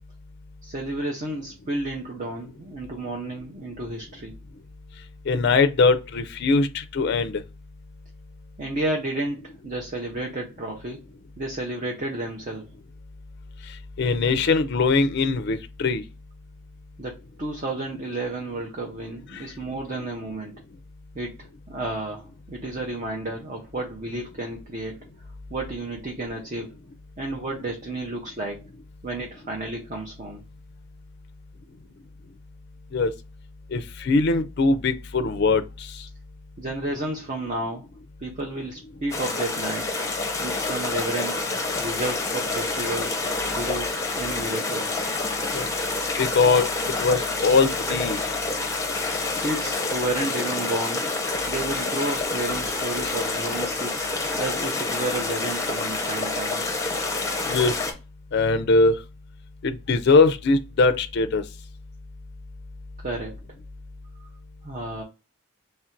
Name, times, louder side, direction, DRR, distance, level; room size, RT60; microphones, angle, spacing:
voice 1, 0.6-4.3 8.6-11.0 11.4-12.7 17.0-20.6 21.1-25.0 25.5-26.8 27.2-28.7 29.0-30.4 36.6-37.9 38.2-39.9 40.4-41.5 41.8-43.2 43.6-45.1 49.4-51.0 51.5-54.1 54.4-56.8 63.0-63.4 64.6-65.0, right 2 dB, 35° right, 0.6 m, -31 dB
voice 2, 5.3-7.4 14.0-16.0 19.3-19.4 32.9-33.1 33.7-35.6 45.5-45.7 46.2-46.7 47.0-48.2 57.5-57.7 58.3-59.0 59.6-61.4, left 3 dB, 50° left, 0.4 m, -21 dB
sound 1, 39.1-57.9, left 3 dB, 15° left, 0.7 m, -28 dB
3.2 x 2.5 x 4.3 m
head